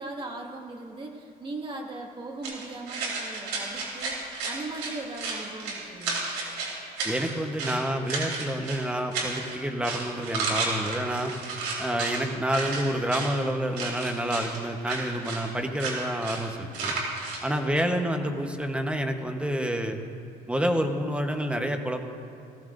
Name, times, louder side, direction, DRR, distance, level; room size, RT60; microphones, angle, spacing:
voice 1, 0.0-6.3 17.8-18.3, right 2 dB, 30° right, 1 dB, 1.9 m, -39 dB
sound 1, 2.4-7.8 8.1-8.8 9.1-9.5 9.8-12.2 12.5-13.3 13.8-14.6 14.8-15.4 15.8-16.4 16.7-17.4, right 4 dB, 85° right, 3.3 m, -32 dB
voice 2, 7.0-11.3 11.8-16.9 17.4-20.0 20.5-22.0, equal, 5° right, 5 dB, 1.0 m, -28 dB
18.5 x 15.0 x 2.6 m, 2.8 s
cardioid pair, 110°, 17 cm